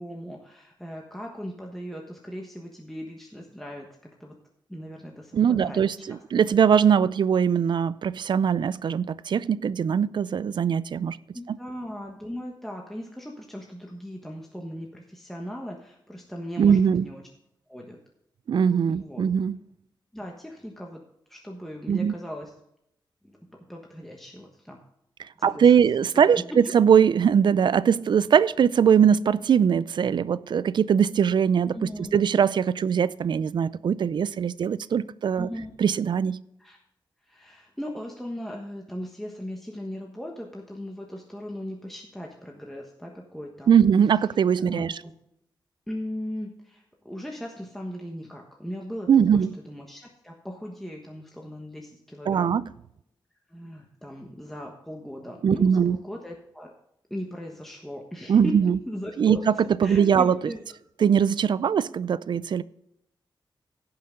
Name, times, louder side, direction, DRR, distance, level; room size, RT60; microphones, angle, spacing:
voice 1, 0.0-4.4 4.7-5.8 6.1-6.2 11.3-17.2 17.7-18.0 18.9-19.3 20.1-21.0 21.3-22.5 23.2-23.4 23.7-24.8 25.4-25.7 26.3-26.6 31.7-32.1 35.3-35.7 36.6-36.8 37.3-43.7 44.6-45.1 45.9-52.6 53.5-56.7 57.1-58.6 58.9-59.5 59.8-60.6, equal, 5° left, 1.2 m, -38 dB
voice 2, 5.3-11.2 11.5-11.6 16.6-17.1 18.5-19.6 21.9-22.1 25.4-31.8 32.1-35.5 35.8-36.4 43.7-45.0 49.1-49.5 52.3-52.6 55.4-56.0 58.3-58.8 59.2-59.5 59.8-60.5 61.0-62.6, right 7 dB, 60° right, 0.4 m, -21 dB
16.5 x 5.8 x 3.8 m
wide cardioid pair, 115°, 9 cm